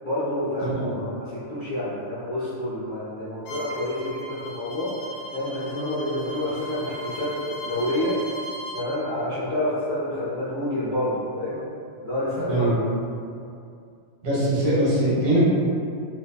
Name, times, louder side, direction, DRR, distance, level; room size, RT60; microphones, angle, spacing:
voice 1, 0.0-4.9 5.3-8.2 8.7-11.6 12.0-12.7, left 1 dB, 60° left, -14 dB, 0.8 m, -28 dB
Bowed string instrument, 3.5-8.9, equal, 80° left, 1.4 m, -37 dB
voice 2, 14.2-15.4, right 1 dB, 85° right, -9 dB, 2.1 m, -22 dB
4.2 x 2.3 x 2.3 m, 2.5 s
omnidirectional pair, 2.4 m